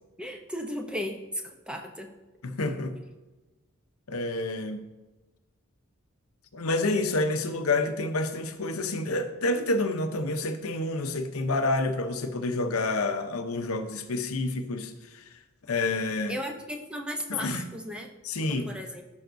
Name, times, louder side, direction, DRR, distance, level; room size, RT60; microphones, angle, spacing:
voice 1, 0.2-2.1 16.3-18.1 18.4-19.0, equal, 5° right, 0.7 m, -36 dB
voice 2, 2.4-3.0 4.1-4.8 6.5-15.3 15.7-16.4 17.3-17.6 18.2-18.7, left 2 dB, 85° left, 0.8 m, -28 dB
13.5 x 5.6 x 2.6 m
head